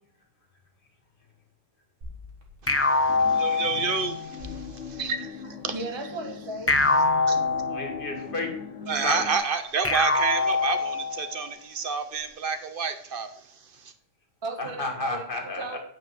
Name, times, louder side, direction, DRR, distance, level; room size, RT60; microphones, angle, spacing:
sound 1, 2.0-3.3 3.8-5.9 6.5-6.6, left 2 dB, 90° right, 2.1 m, -47 dB
voice 1, 2.6-5.7 7.3-7.4 8.9-13.5 13.8-13.9, right 5 dB, 50° right, 9 dB, 0.9 m, -30 dB
sound 2, 2.7-4.3 6.7-8.3 9.8-11.4, left 3 dB, 15° left, 0.5 m, -24 dB
sound 3, 3.1-9.4, left 6 dB, 70° left, 1.1 m, -41 dB
voice 2, 5.7-7.1 14.4-15.8, right 2 dB, 25° right, 5 dB, 0.8 m, -36 dB
voice 3, 7.7-9.3 14.6-15.8, left 2 dB, 45° left, 4 dB, 1.6 m, -32 dB
8.9 x 4.6 x 6.5 m, 0.65 s
omnidirectional pair, 1.2 m